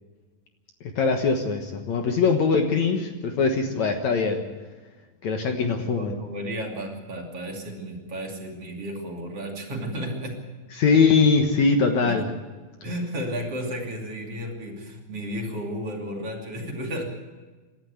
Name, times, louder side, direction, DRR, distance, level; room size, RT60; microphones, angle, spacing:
voice 1, 1.0-4.4 5.2-6.1 10.8-12.3, left 4 dB, 60° left, 4 dB, 2.4 m, -21 dB
voice 2, 5.5-10.5 12.0-12.2 12.8-17.0, equal, 45° right, 1 dB, 3.4 m, -33 dB
27.0 x 12.0 x 8.1 m, 1.3 s
omnidirectional pair, 4.2 m